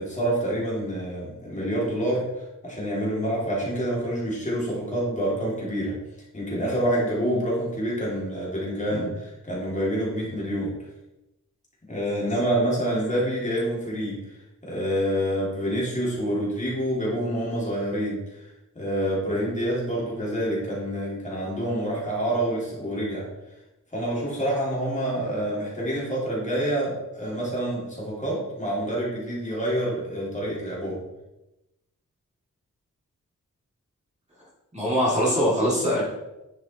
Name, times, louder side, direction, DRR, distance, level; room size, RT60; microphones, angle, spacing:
voice 1, 0.0-5.9 6.3-10.7 11.9-14.2 14.6-18.5 18.7-23.2 23.9-31.0, right 1 dB, 25° left, -6 dB, 3.3 m, -27 dB
voice 2, 34.7-36.0, equal, 20° right, -6 dB, 3.2 m, -22 dB
10.0 x 6.0 x 4.5 m, 0.95 s
wide cardioid pair, 155°, 32 cm